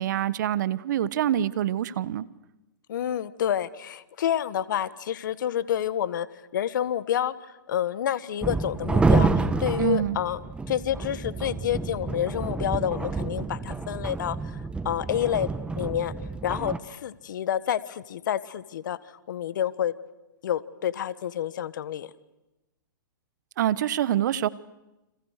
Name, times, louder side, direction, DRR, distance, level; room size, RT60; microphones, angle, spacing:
voice 1, 0.0-2.3 9.8-10.2 23.6-24.5, right 11 dB, 60° right, 17 dB, 1.3 m, -25 dB
voice 2, 2.9-6.3 6.5-7.3 7.7-10.4 10.7-14.6 14.8-15.5 15.8-16.1 16.4-19.0 19.3-19.9 20.4-22.1, left 10 dB, 65° left, 16 dB, 1.5 m, -28 dB
sound 1, 8.4-16.8, right 3 dB, 10° right, 1.5 m, -28 dB
30.0 x 27.0 x 6.7 m, 0.99 s
hypercardioid pair, 120°, 11 cm